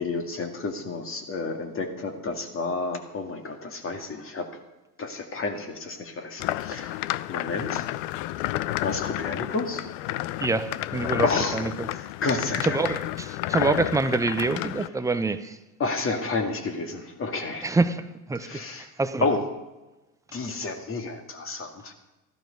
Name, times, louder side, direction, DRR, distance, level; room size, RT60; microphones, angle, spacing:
voice 1, 0.0-4.5 5.0-7.0 7.3-7.9 8.8-9.8 11.2-13.0 15.8-17.8 18.4-18.9 19.2-19.4 20.3-21.9, left 3 dB, 25° left, 5 dB, 2.0 m, -30 dB
sound 1, 6.4-14.9, left 16 dB, 50° left, 0.6 m, -31 dB
voice 2, 10.4-11.3 11.5-11.9 12.6-15.5 17.6-18.0 18.3-18.6 19.0-19.3, right 3 dB, 5° right, 11 dB, 0.6 m, -26 dB
14.0 x 12.0 x 5.3 m, 1.1 s
hypercardioid pair, 95°, 49 cm